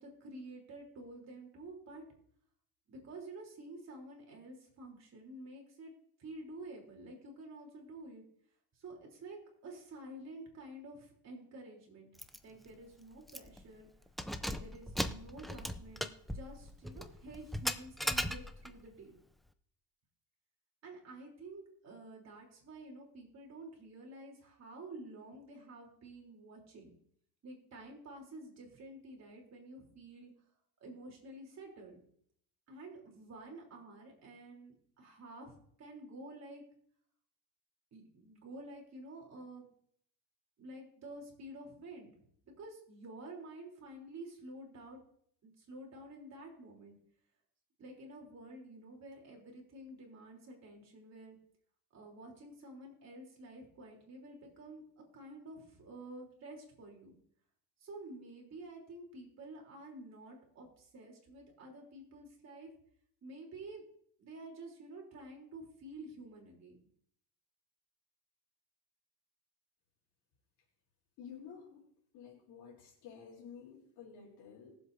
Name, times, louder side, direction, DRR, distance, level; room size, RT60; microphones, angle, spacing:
voice 1, 0.0-2.0 2.9-5.9 6.2-8.2 8.8-12.1 12.4-13.9 14.4-19.2 20.8-26.9 27.4-30.3 30.8-32.0 32.7-35.5 35.8-36.6 37.9-39.7 40.6-42.1 42.6-45.0 45.4-47.0 47.8-51.4 51.9-54.8 55.1-57.1 57.8-62.7 63.2-63.8 64.2-66.8, right 2 dB, 40° right, 0 dB, 3.5 m, -50 dB
Keys jangling, 12.2-12.4 12.7-12.8 13.3-13.6 14.1-18.8, equal, ahead, 0.3 m, -38 dB
voice 2, 71.2-71.8 72.1-74.8, left 7 dB, 75° left, -5 dB, 3.4 m, -51 dB
20.5 x 7.6 x 2.7 m, 0.66 s
cardioid pair, 120°, 39 cm